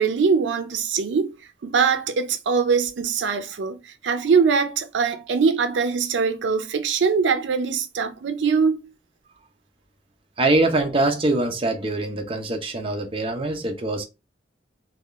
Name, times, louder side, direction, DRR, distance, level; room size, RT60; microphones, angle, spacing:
voice 1, 0.0-1.3 1.6-8.8, right 5 dB, 80° right, 0.4 m, -22 dB
voice 2, 10.4-14.0, right 2 dB, 30° right, 0.6 m, -23 dB
3.4 x 2.3 x 2.4 m
head